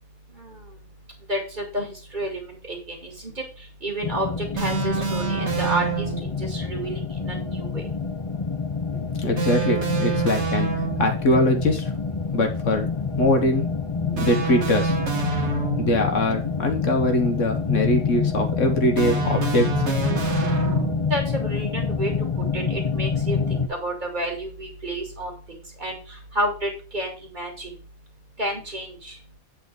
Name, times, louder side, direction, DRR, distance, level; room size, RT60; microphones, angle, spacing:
voice 1, 0.3-0.8 1.3-7.8 21.1-27.8 28.4-29.2, right 1 dB, 35° right, 1 dB, 2.4 m, -31 dB
sound 1, 4.0-23.7, left 5 dB, 30° left, 0.6 m, -27 dB
sound 2, 4.6-6.4 9.4-11.2 14.1-16.1 19.0-21.2, right 6 dB, 55° right, 1.7 m, -27 dB
voice 2, 9.2-11.9 12.3-12.9 13.2-13.7 14.0-14.9 15.8-19.9, left 1 dB, 60° left, 4 dB, 1.5 m, -22 dB
8.3 x 4.3 x 5.1 m, 0.34 s
omnidirectional pair, 1.5 m